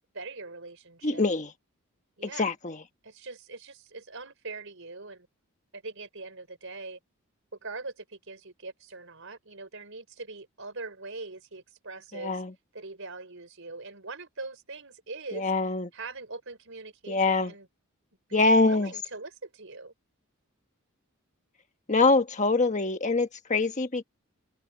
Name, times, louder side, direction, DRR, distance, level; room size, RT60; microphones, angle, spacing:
voice 1, 0.1-1.2 2.2-2.5 3.0-5.3 5.7-7.0 7.6-12.4 12.7-15.5 15.9-17.7 18.3-19.9, right 3 dB, 60° right, 5.8 m, -42 dB
voice 2, 1.0-1.5 2.2-2.8 12.1-12.5 15.3-15.9 17.1-17.5 18.3-18.9 21.9-24.0, left 3 dB, 35° left, 1.3 m, -24 dB
open air
head